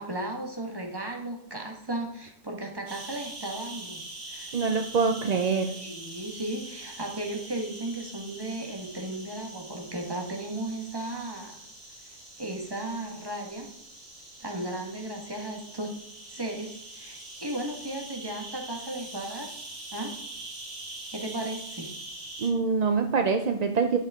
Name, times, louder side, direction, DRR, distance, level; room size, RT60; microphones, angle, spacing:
voice 1, 0.0-4.0 4.3-4.5 5.7-11.6 12.0-13.7 14.4-15.9 16.3-19.5 19.9-20.1 21.1-21.9, right 1 dB, 20° right, 1 dB, 1.6 m, -35 dB
sound 1, 2.9-22.5, right 2 dB, 70° right, 2.5 m, -43 dB
voice 2, 4.5-5.7 22.4-24.0, right 5 dB, 50° right, 6 dB, 0.5 m, -25 dB
11.0 x 6.6 x 3.6 m, 0.73 s
omnidirectional pair, 1.3 m